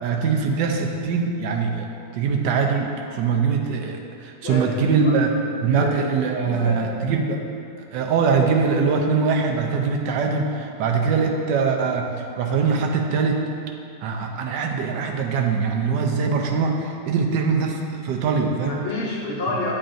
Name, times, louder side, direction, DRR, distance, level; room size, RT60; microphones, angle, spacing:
voice 1, 0.0-1.9 2.1-7.4 7.9-13.4 14.0-18.8, right 5 dB, 85° right, 2 dB, 1.3 m, -22 dB
voice 2, 4.4-5.2 5.4-5.9 6.4-6.8 18.6-19.7, left 2 dB, 50° left, -3 dB, 0.8 m, -29 dB
9.8 x 3.8 x 2.6 m, 2.4 s
omnidirectional pair, 1.9 m